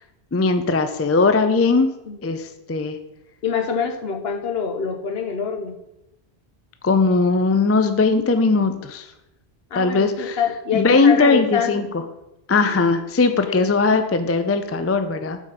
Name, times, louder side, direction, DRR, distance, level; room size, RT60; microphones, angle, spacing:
voice 1, 0.3-1.9 2.2-3.0 6.8-9.1 9.7-10.4 10.7-11.8 12.5-15.4, left 4 dB, 20° left, 9 dB, 0.4 m, -19 dB
voice 2, 3.4-5.8 9.7-11.9 13.5-13.7, left 6 dB, 70° left, 5 dB, 1.2 m, -25 dB
7.7 x 5.1 x 5.7 m, 0.91 s
omnidirectional pair, 1.1 m